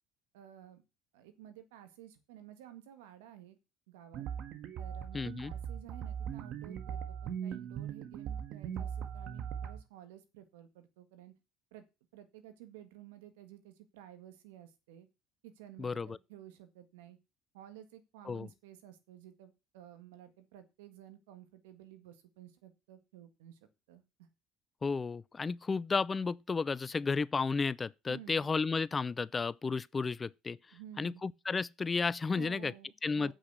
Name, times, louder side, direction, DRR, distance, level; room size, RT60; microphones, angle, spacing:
voice 1, 0.3-0.8 1.1-3.6 3.9-4.3 4.8-11.3 11.7-11.8 12.1-15.1 15.4-17.2 17.5-24.3 28.1-28.5 30.7-31.2 32.3-33.3, right 12 dB, 85° right, 1.7 m, -53 dB
sound 1, 4.1-9.8, right 8 dB, 60° right, 1.6 m, -40 dB
voice 2, 5.1-5.5 15.8-16.2 18.3-18.5 24.8-30.6 31.0-32.7 33.0-33.3, left 4 dB, 25° left, 0.5 m, -33 dB
7.8 x 6.3 x 8.1 m
supercardioid pair, 80°, 0 cm